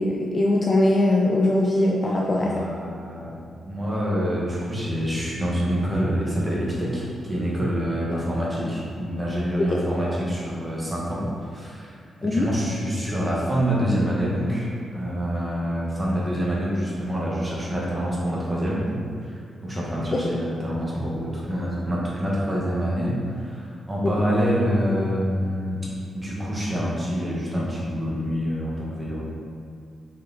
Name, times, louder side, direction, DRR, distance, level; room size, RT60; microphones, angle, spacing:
voice 1, 0.0-2.5 9.7-9.8 12.2-12.5 20.1-20.2 24.0-24.1, left 1 dB, 25° left, -2 dB, 0.4 m, -21 dB
voice 2, 2.2-3.3 3.6-11.3 11.5-11.9 12.2-19.4 19.6-25.8 26.1-29.3, equal, 15° right, -6 dB, 1.4 m, -26 dB
6.3 x 4.5 x 4.0 m, 2.3 s
wide cardioid pair, 175°, 0 cm